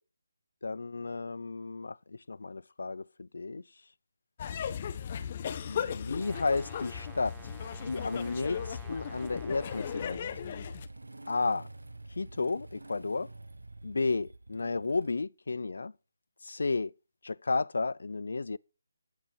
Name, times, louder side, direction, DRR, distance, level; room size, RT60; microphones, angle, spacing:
voice 1, 0.6-3.6 5.6-7.4 7.8-10.2 11.3-11.7 12.2-13.3 13.8-15.9 16.4-16.9 17.2-18.6, left 3 dB, 70° left, 0.6 m, -32 dB
sound 1, 4.4-10.9, left 8 dB, 35° left, 1.4 m, -37 dB
Brass instrument, 6.2-10.2, right 8 dB, 10° right, 1.0 m, -53 dB
Motorcycle / Engine starting, 6.2-15.1, right 2 dB, 90° right, 1.6 m, -48 dB
14.5 x 8.6 x 5.8 m
figure-of-eight pair, 155°, 0 cm